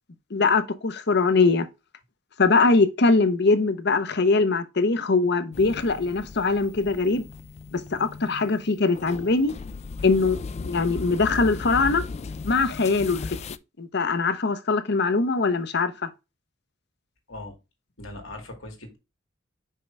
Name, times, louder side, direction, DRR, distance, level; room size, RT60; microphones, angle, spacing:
voice 1, 0.3-1.7 2.4-7.3 7.7-9.5 10.0-12.0 12.4-13.2 13.8-16.1, left 3 dB, 55° left, 0.8 m, -22 dB
sound 1, 5.5-13.6, left 4 dB, 35° left, 0.3 m, -37 dB
voice 2, 17.3-17.6 18.0-19.0, left 2 dB, 85° left, 2.3 m, -39 dB
5.6 x 5.3 x 3.4 m
head